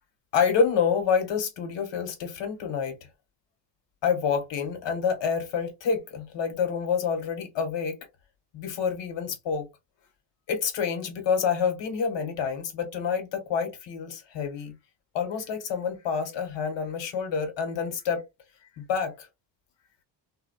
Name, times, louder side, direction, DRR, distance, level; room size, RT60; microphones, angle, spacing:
voice 1, 0.3-3.0 4.0-8.0 8.5-9.7 10.5-14.8 15.1-18.2 18.8-19.3, left 6 dB, 85° left, 1.2 m, -28 dB
3.5 x 2.2 x 2.2 m
cardioid pair, 165°, 43 cm